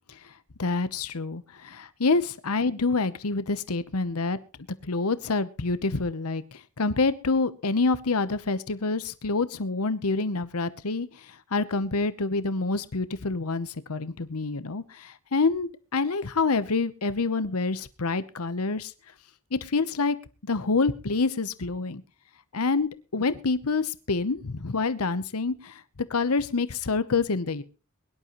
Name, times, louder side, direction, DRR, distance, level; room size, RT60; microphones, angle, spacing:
voice 1, 0.6-4.4 4.8-6.4 6.8-11.1 11.5-18.9 19.5-20.2 20.4-22.0 22.5-25.8 26.1-27.6, left 3 dB, 90° left, 13 dB, 1.0 m, -27 dB
22.5 x 11.5 x 3.1 m, 0.33 s
head